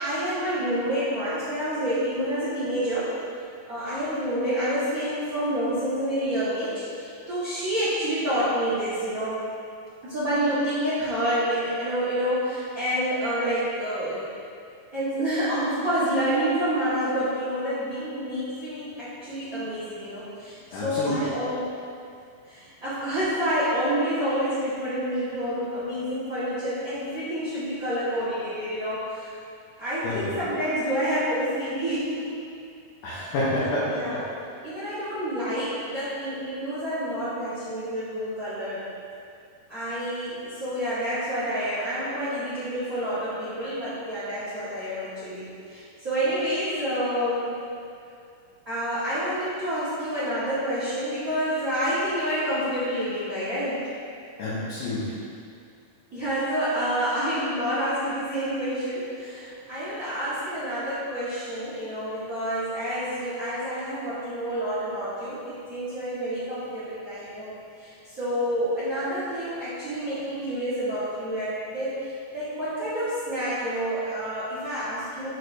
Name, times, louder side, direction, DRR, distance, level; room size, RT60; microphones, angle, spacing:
voice 1, 0.0-3.1 3.7-9.4 10.0-14.3 14.9-21.6 22.5-29.3 29.8-32.5 33.5-34.2 34.6-38.8 39.7-47.6 48.6-53.8 56.1-67.5 67.8-75.3, equal, 65° right, -13 dB, 0.8 m, -28 dB
voice 2, 20.7-21.2 30.0-30.3 33.0-33.9 54.4-55.1, left 1 dB, 70° left, -9 dB, 2.3 m, -28 dB
6.4 x 6.3 x 2.6 m, 2.3 s
omnidirectional pair, 4.1 m